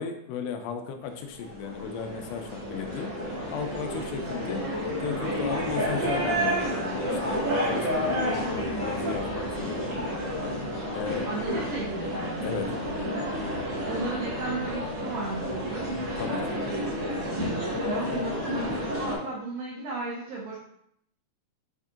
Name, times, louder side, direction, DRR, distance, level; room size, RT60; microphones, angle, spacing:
voice 1, 0.0-3.1 3.5-4.6 5.0-10.1 10.9-11.3 12.4-12.7 16.2-16.6, left 6 dB, 85° left, 5 dB, 2.7 m, -35 dB
sound 1, 1.2-19.2, equal, 55° right, 1.9 m, -30 dB
voice 2, 11.3-12.3 13.9-15.9 17.8-20.6, right 2 dB, 80° right, -4 dB, 2.2 m, -34 dB
8.1 x 2.7 x 2.4 m, 0.74 s
omnidirectional pair, 5.0 m